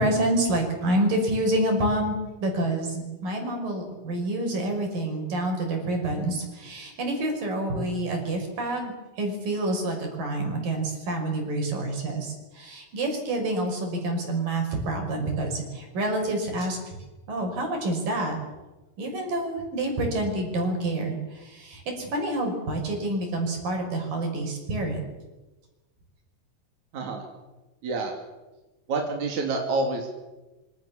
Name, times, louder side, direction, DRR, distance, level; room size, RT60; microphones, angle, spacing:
voice 1, 0.0-8.9 9.2-16.8 17.3-18.4 19.0-25.0, right 1 dB, 85° right, 3 dB, 7.6 m, -28 dB
voice 2, 26.9-27.2 27.8-28.1 28.9-30.1, right 3 dB, 60° right, 1 dB, 4.3 m, -27 dB
26.0 x 25.5 x 7.3 m, 1.1 s
omnidirectional pair, 3.8 m